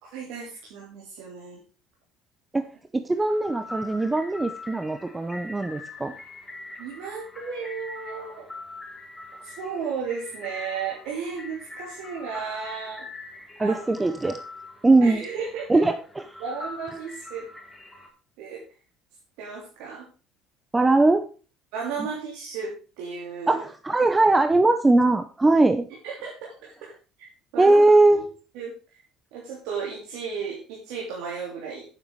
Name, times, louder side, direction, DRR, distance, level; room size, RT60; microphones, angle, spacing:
voice 1, 0.0-1.6 6.8-8.5 9.4-13.1 13.6-14.1 15.0-15.8 16.4-17.5 18.4-18.6 19.4-20.0 21.7-23.6 26.0-26.5 27.2-27.3 27.5-28.2 28.5-28.7 29.3-31.9, right 5 dB, 75° right, -3 dB, 3.1 m, -34 dB
voice 2, 2.9-6.1 13.6-14.4 14.8-15.2 15.7-16.2 20.7-21.2 23.5-25.9 27.6-28.2, right 2 dB, 15° right, 8 dB, 0.8 m, -20 dB
sound 1, 3.2-18.1, left 2 dB, 10° left, 3.4 m, -43 dB
8.8 x 7.1 x 4.8 m, 0.36 s
supercardioid pair, 90°, 0 cm